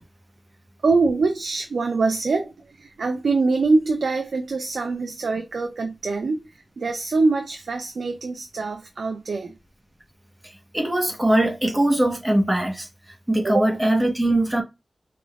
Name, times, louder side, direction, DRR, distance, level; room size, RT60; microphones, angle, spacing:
voice 1, 0.8-6.5 6.8-9.5 13.4-13.7, right 3 dB, 85° right, 0.5 m, -24 dB
voice 2, 10.7-12.9 13.3-14.6, right 1 dB, 15° right, 1.0 m, -21 dB
4.8 x 3.6 x 2.3 m
wide cardioid pair, 105°, 0 cm